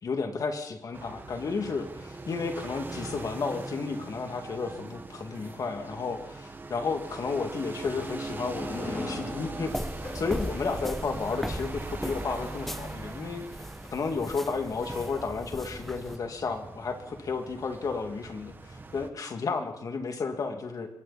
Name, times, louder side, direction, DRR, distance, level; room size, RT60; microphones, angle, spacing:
voice 1, 0.0-9.7 10.1-13.4 13.9-20.9, left 4 dB, 65° left, 5 dB, 2.5 m, -32 dB
sound 1, 0.9-19.1, right 3 dB, 30° right, 1.6 m, -41 dB
sound 2, 7.2-11.9, left 2 dB, 35° left, 5.6 m, -42 dB
sound 3, 9.7-16.2, equal, 5° left, 0.7 m, -38 dB
26.5 x 22.5 x 4.3 m, 0.79 s
wide cardioid pair, 165°, 6 cm